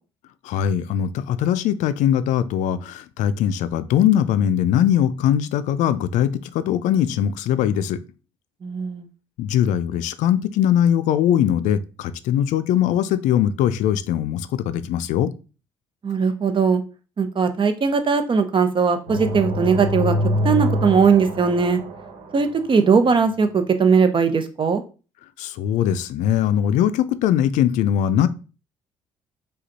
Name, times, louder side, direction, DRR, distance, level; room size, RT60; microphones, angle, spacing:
voice 1, 0.4-8.0 9.4-15.3 25.4-28.3, left 10 dB, 75° left, 13 dB, 0.4 m, -21 dB
voice 2, 8.6-9.1 16.0-16.8 17.2-20.2 20.4-21.8 22.3-24.8, right 5 dB, 40° right, 9 dB, 0.8 m, -19 dB
sound 1, 19.1-22.9, left 1 dB, 75° right, 1.2 m, -25 dB
5.0 x 2.4 x 4.1 m, 0.35 s
supercardioid pair, 60°, 13 cm